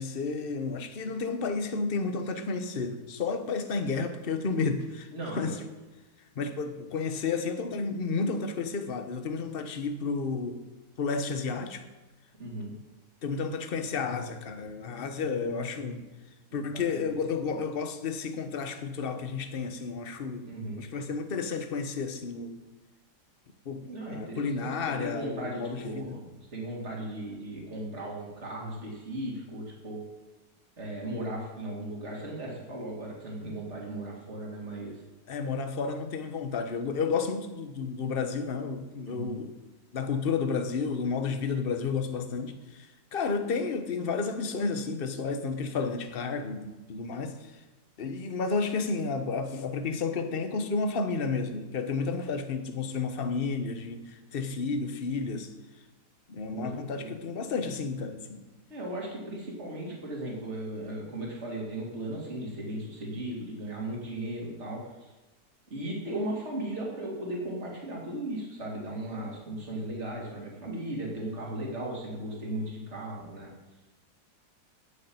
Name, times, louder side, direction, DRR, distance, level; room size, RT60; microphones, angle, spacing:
voice 1, 0.0-5.6 6.4-10.6 11.0-11.8 13.2-16.0 16.5-20.5 20.8-22.6 23.6-26.2 35.3-39.5 39.9-47.5 48.0-55.5 56.3-58.4, left 4 dB, 40° left, 8 dB, 1.1 m, -31 dB
voice 2, 5.1-5.6 12.4-12.7 16.5-17.1 17.4-17.6 20.4-20.8 23.9-24.7 25.0-30.0 30.8-35.0 39.1-39.4 56.5-57.1 58.7-65.1 65.7-73.5, right 1 dB, 40° right, -2 dB, 3.4 m, -37 dB
9.7 x 8.6 x 8.9 m, 1.1 s
omnidirectional pair, 1.8 m